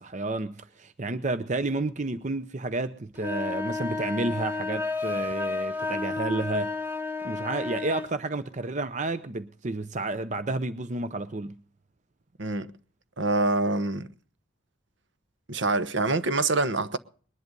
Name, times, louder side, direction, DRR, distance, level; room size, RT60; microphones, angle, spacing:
voice 1, 0.0-6.7 7.2-11.6, right 2 dB, 35° right, 0.6 m, -31 dB
sound 1, 3.2-8.1, left 3 dB, 10° right, 1.5 m, -31 dB
voice 2, 13.2-14.1 15.5-17.0, right 2 dB, 60° right, 1.1 m, -25 dB
21.0 x 11.0 x 5.3 m
head